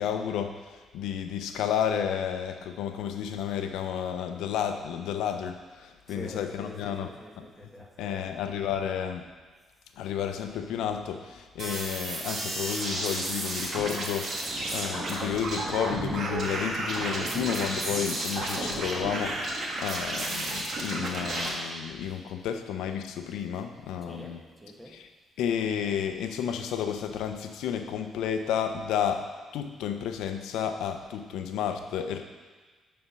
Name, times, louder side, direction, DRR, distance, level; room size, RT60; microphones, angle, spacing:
voice 1, 0.0-7.1 7.4-7.5 8.0-9.3 10.0-24.4 24.9-25.1 25.4-29.3 29.5-32.2, left 8 dB, 90° left, 7 dB, 0.7 m, -31 dB
voice 2, 6.1-8.4 17.2-17.6 22.1-22.2 22.5-22.6 24.0-25.0, equal, 5° right, 0 dB, 1.5 m, -46 dB
sound 1, 11.6-21.5, right 2 dB, 55° right, 1.7 m, -32 dB
9.7 x 4.3 x 5.6 m, 1.4 s
cardioid pair, 90°, 0 cm